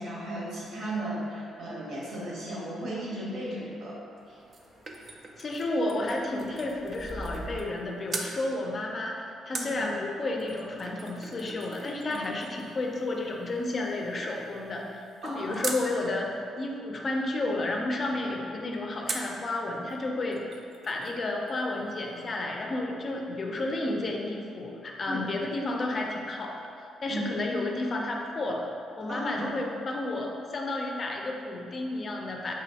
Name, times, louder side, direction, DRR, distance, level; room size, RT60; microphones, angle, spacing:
voice 1, 0.0-4.0 4.3-4.4 9.5-9.8 15.2-15.6 25.1-25.2 27.1-27.2 29.1-29.5, right 1 dB, 70° right, -6 dB, 1.1 m, -35 dB
sound 1, 3.4-7.6, right 1 dB, 5° left, 0.6 m, -46 dB
sound 2, 4.2-7.8 8.1-8.4 9.5-15.9 19.1-19.4 19.9-20.0 20.2-21.2 21.5-21.6, right 3 dB, 45° right, 0.4 m, -41 dB
voice 2, 5.4-20.4 20.9-28.7 29.0-32.5, left 2 dB, 40° left, 0 dB, 0.4 m, -32 dB
3.7 x 3.0 x 2.8 m, 2.5 s
cardioid pair, 90°, 0 cm